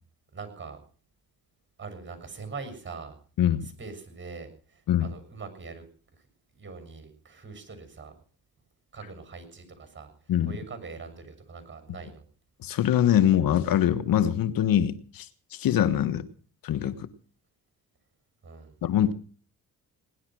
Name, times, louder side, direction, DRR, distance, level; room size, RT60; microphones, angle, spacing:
voice 1, 0.3-0.8 1.8-3.2 3.6-5.8 6.5-8.1 8.9-12.2 18.4-18.7, right 4 dB, 35° right, 9 dB, 6.9 m, -42 dB
voice 2, 3.4-3.7 4.9-5.1 10.3-10.5 12.6-16.3 16.6-17.1 18.8-19.1, left 10 dB, 75° left, 13 dB, 1.3 m, -23 dB
19.0 x 11.5 x 6.2 m, 0.41 s
cardioid pair, 65°, 35 cm